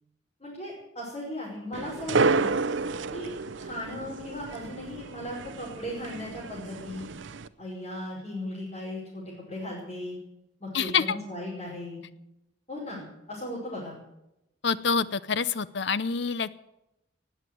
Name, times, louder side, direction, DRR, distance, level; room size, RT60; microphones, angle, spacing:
voice 1, 0.4-2.5 3.1-3.3 3.6-7.1 7.6-10.2 10.6-12.0 12.7-13.0 13.3-13.9, left 1 dB, 35° left, -6 dB, 5.5 m, -37 dB
sound 1, 1.7-7.5, right 4 dB, 70° right, 0.7 m, -30 dB
voice 2, 10.7-11.0 14.6-16.5, left 6 dB, 60° left, 16 dB, 0.7 m, -26 dB
18.5 x 8.2 x 9.3 m, 0.89 s
head